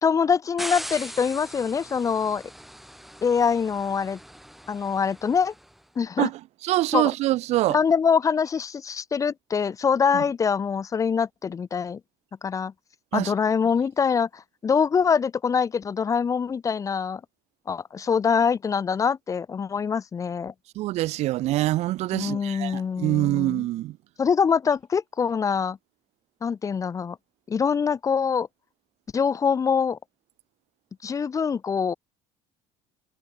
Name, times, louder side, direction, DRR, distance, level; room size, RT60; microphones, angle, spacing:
voice 1, 0.0-2.4 3.2-4.2 4.7-5.5 6.0-6.3 6.9-7.1 7.7-12.0 12.4-12.7 13.1-17.2 17.7-20.5 22.1-23.7 24.2-25.8 26.4-27.2 27.5-28.5 29.1-30.0 31.0-31.9, left 6 dB, 25° left, 0.9 m, -24 dB
sound 1, 0.6-5.7, equal, ahead, 4.4 m, -40 dB
voice 2, 6.2-7.8 10.1-10.2 13.1-13.3 20.8-24.0, right 16 dB, 65° right, 2.3 m, -25 dB
cardioid pair, 115°, 12 cm